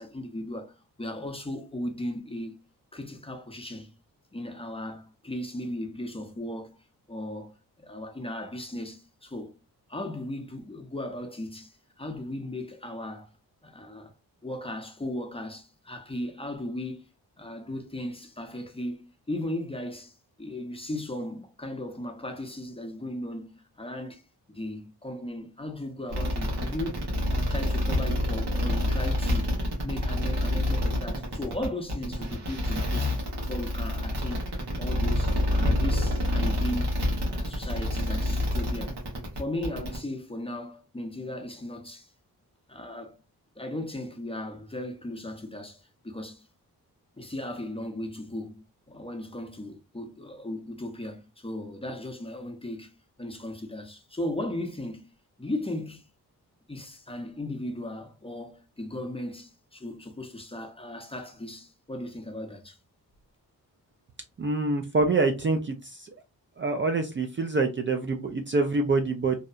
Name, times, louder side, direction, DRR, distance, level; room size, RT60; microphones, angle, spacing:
voice 1, 0.0-2.6 2.9-3.9 4.3-6.8 7.1-9.5 9.9-13.3 13.6-14.1 14.4-17.0 17.4-24.2 24.5-34.5 34.8-37.0 37.2-39.0 39.3-42.1 42.7-43.2 43.6-46.5 47.2-55.1 55.4-56.1 56.7-62.8, left 1 dB, 15° left, 0.6 m, -37 dB
sound 1, 26.1-40.0, left 1 dB, 80° right, 1.1 m, -27 dB
voice 2, 64.4-66.1 66.6-69.4, right 3 dB, 30° right, 0.4 m, -26 dB
2.7 x 2.0 x 2.4 m
cardioid pair, 50°, 40 cm